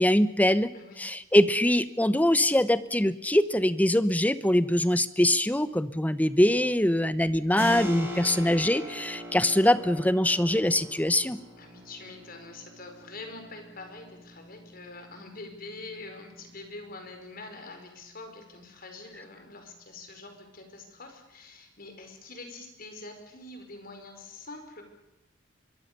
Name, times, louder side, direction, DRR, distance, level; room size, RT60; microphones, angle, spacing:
voice 1, 0.0-0.7 1.0-11.4, left 1 dB, 10° left, 14 dB, 0.9 m, -23 dB
voice 2, 0.7-1.0 11.6-24.9, left 2 dB, 50° left, 5 dB, 5.1 m, -45 dB
Keyboard (musical), 7.6-17.9, left 1 dB, 15° right, 7.9 m, -41 dB
25.5 x 22.0 x 6.9 m, 0.94 s
head